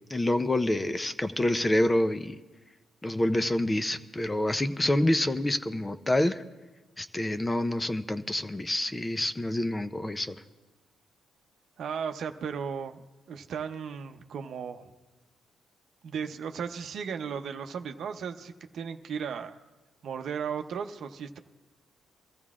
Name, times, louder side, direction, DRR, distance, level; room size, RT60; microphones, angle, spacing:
voice 1, 0.1-2.4 3.0-6.4 7.0-10.4, left 1 dB, 15° left, 11 dB, 0.6 m, -27 dB
voice 2, 11.8-14.9 16.0-19.6 20.0-21.4, right 7 dB, 65° right, 6 dB, 0.7 m, -36 dB
23.0 x 14.0 x 2.4 m, 1.2 s
cardioid pair, 90°, 0 cm